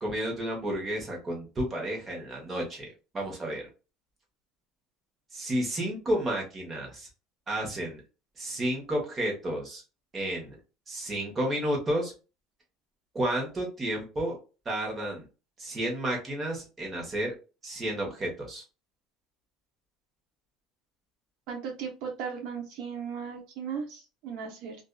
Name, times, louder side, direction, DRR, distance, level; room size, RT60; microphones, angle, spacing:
voice 1, 0.0-2.9 3.1-3.7 5.3-7.1 7.5-8.0 8.4-9.8 10.1-10.6 10.9-12.1 13.1-14.4 14.6-15.2 15.6-17.3 17.6-18.6, right 1 dB, 25° right, -1 dB, 1.0 m, -31 dB
voice 2, 21.5-24.8, right 6 dB, 70° right, 2 dB, 0.8 m, -36 dB
2.6 x 2.3 x 2.2 m, 0.32 s
cardioid pair, 130°, 0 cm